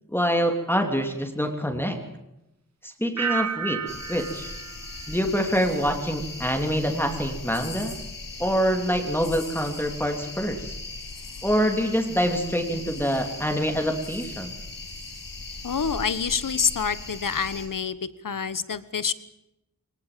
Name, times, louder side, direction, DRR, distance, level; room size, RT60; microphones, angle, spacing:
voice 1, 0.1-2.0 2.8-3.8 4.1-4.5 5.1-7.9 8.4-10.7 11.4-14.5, equal, 5° left, 3 dB, 3.1 m, -25 dB
sound 1, 3.2-6.0 6.3-6.8, right 7 dB, 55° right, 1.2 m, -34 dB
sound 2, 3.9-17.7, left 3 dB, 85° left, 5.7 m, -38 dB
voice 2, 15.6-19.1, left 6 dB, 70° left, 15 dB, 1.3 m, -27 dB
22.0 x 20.0 x 7.6 m, 0.89 s
wide cardioid pair, 80°, 33 cm